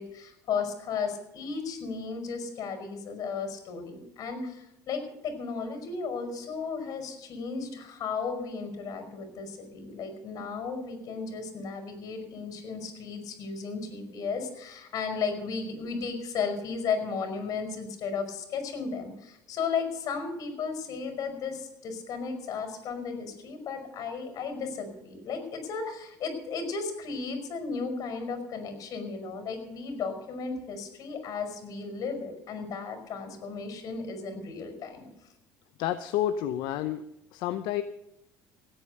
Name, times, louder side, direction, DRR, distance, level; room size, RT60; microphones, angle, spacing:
voice 1, 0.0-35.1, left 5 dB, 50° left, 7 dB, 5.4 m, -34 dB
voice 2, 35.8-37.0 37.3-37.8, left 11 dB, 70° left, 10 dB, 0.9 m, -29 dB
17.0 x 9.1 x 6.7 m, 0.89 s
cardioid pair, 125°, 8 cm